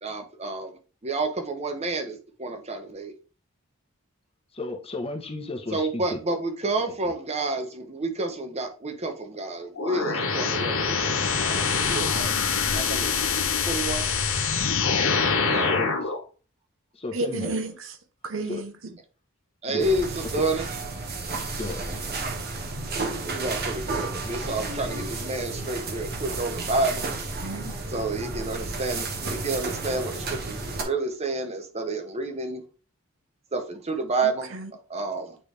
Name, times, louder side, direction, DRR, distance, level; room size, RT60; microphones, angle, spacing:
voice 1, 0.0-3.1 5.7-12.3 12.7-13.2 13.7-14.1 15.4-15.8 19.6-20.7 23.2-27.0 27.9-32.6 33.5-34.6 34.9-35.4, right 2 dB, 30° right, 1.0 m, -30 dB
voice 2, 4.5-6.2 6.9-7.1 15.7-16.1 16.9-17.5 18.5-18.6 19.7-19.9 21.6-21.8, left 2 dB, 30° left, 1.0 m, -34 dB
sound 1, 9.8-16.2, left 5 dB, 75° left, 0.9 m, -25 dB
voice 3, 17.1-18.0 18.2-19.0 27.4-27.7 34.2-34.7, right 2 dB, 65° right, 0.9 m, -32 dB
sound 2, 19.8-30.8, right 3 dB, 50° right, 1.2 m, -32 dB
8.9 x 3.3 x 3.3 m
head